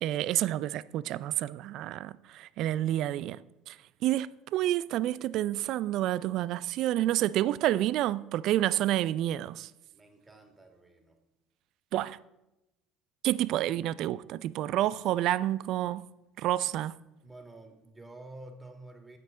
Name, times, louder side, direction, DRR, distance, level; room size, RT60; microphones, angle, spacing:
voice 1, 0.0-3.8 4.0-9.7 11.9-12.2 13.2-16.0 16.4-16.9, right 13 dB, 60° right, 0.4 m, -29 dB
voice 2, 9.9-11.2 17.2-19.2, right 2 dB, 20° right, 2.2 m, -49 dB
9.3 x 9.1 x 3.9 m
hypercardioid pair, 65°, 0 cm